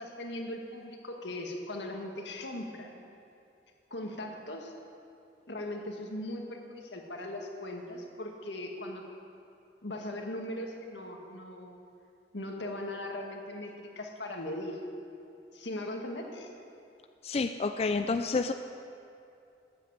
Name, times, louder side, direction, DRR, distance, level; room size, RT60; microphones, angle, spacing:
voice 1, 0.0-2.9 3.9-4.7 5.5-9.0 9.8-11.8 12.3-14.8 15.5-16.5, left 1 dB, 85° left, 2 dB, 1.8 m, -39 dB
voice 2, 17.2-18.5, left 4 dB, 35° left, 8 dB, 0.3 m, -29 dB
13.0 x 9.8 x 8.1 m, 2.6 s
head